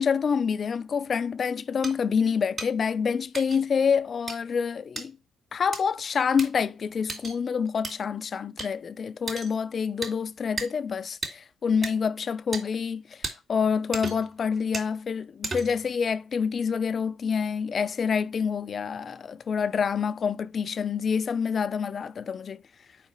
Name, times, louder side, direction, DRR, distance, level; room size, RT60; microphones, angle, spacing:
voice 1, 0.0-5.2 5.5-13.0 13.5-22.6, left 6 dB, 45° left, 0.5 m, -27 dB
sound 1, 1.8-1.9 2.6-2.7 3.3-3.6 4.3-4.4 5.0-5.1 5.7-5.8 6.4-6.5 7.1-7.4 7.8-7.9 8.6-8.7 9.3-9.5 10.0-10.1 10.6-10.7 11.2-11.3 11.8-11.9 12.5-12.6 13.2-13.3 13.9-14.3 14.7-14.9 15.4-15.8, right 3 dB, 35° right, 2.6 m, -34 dB
5.0 x 4.7 x 5.4 m
cardioid pair, 90°, 0 cm